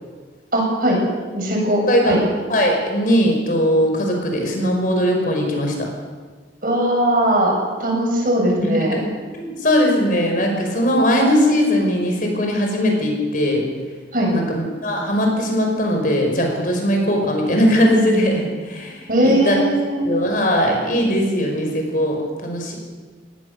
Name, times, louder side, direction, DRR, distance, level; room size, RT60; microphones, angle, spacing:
voice 1, 0.5-1.0 1.3-2.2 6.6-7.5 7.8-9.0 14.1-14.3 19.1-20.0, right 1 dB, 45° right, -1 dB, 7.3 m, -19 dB
voice 2, 2.5-5.7 8.6-13.6 14.3-19.6 20.0-22.8, equal, 45° left, 2 dB, 5.5 m, -19 dB
22.0 x 18.5 x 6.7 m, 1.4 s
head